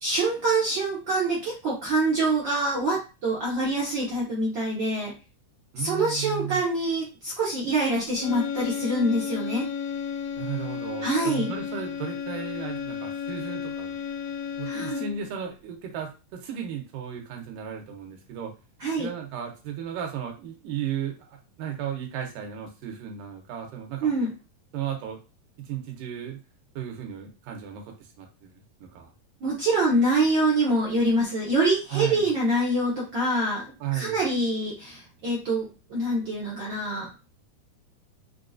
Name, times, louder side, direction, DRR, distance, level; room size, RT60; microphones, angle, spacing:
voice 1, 0.0-5.1 5.8-9.7 11.0-11.5 14.7-15.0 18.8-19.1 24.0-24.3 29.4-33.6 33.9-37.1, right 2 dB, 70° right, -6 dB, 1.1 m, -25 dB
voice 2, 5.7-6.6 10.4-13.9 14.6-18.5 19.0-24.1 24.7-25.2 25.6-26.4 26.8-29.1 31.9-32.3 33.8-34.2, right 9 dB, 85° right, 2 dB, 2.6 m, -35 dB
sound 1, 8.2-15.3, left 7 dB, 85° left, 2.4 m, -33 dB
5.7 x 2.5 x 2.4 m, 0.30 s
omnidirectional pair, 3.8 m